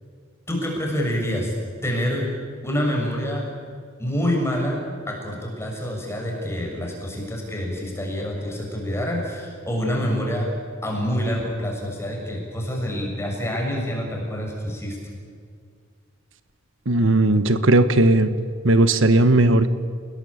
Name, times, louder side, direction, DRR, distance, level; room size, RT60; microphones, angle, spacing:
voice 1, 0.5-1.5 1.8-2.3 2.6-3.4 4.0-4.8 5.1-10.5 10.8-15.0, equal, 15° left, -1 dB, 6.7 m, -26 dB
voice 2, 16.8-18.3 18.6-19.7, right 2 dB, 75° right, 11 dB, 1.3 m, -17 dB
29.5 x 21.0 x 8.8 m, 2.1 s
head